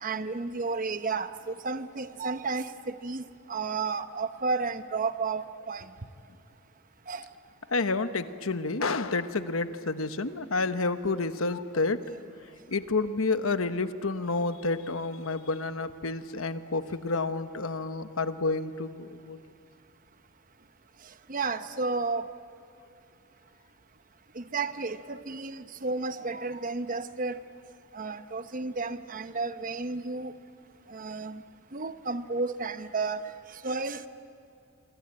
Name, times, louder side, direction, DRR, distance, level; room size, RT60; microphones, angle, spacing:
voice 1, 0.0-5.9 7.1-7.3 21.3-22.2 24.3-27.4 27.9-30.3 30.9-31.4 31.7-33.2 33.6-34.1, right 4 dB, 40° right, 11 dB, 0.9 m, -32 dB
voice 2, 7.7-12.2 12.7-19.4, left 3 dB, 85° left, 10 dB, 1.1 m, -29 dB
25.5 x 25.0 x 8.8 m, 2.6 s
head